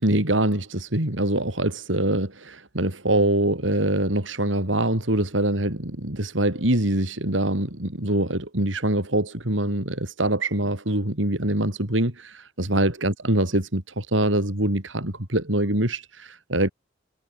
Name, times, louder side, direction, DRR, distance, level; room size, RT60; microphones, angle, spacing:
voice 1, 0.0-16.7, right 1 dB, 90° right, 4.5 m, -24 dB
head